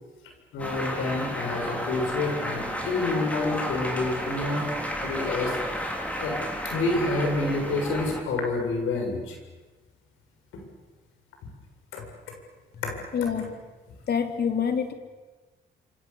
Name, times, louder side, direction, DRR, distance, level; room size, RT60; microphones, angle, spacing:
voice 1, 0.5-4.7 5.0-6.4 6.6-9.4 10.5-10.6 11.9-12.0 12.8-12.9, left 2 dB, 85° left, 3 dB, 7.4 m, -28 dB
sound 1, 0.6-8.2, equal, 5° left, 5.5 m, -32 dB
voice 2, 13.1-13.5 14.1-14.9, left 7 dB, 55° left, 6 dB, 3.5 m, -26 dB
28.0 x 26.0 x 7.3 m, 1.3 s
cardioid pair, 90°, 20 cm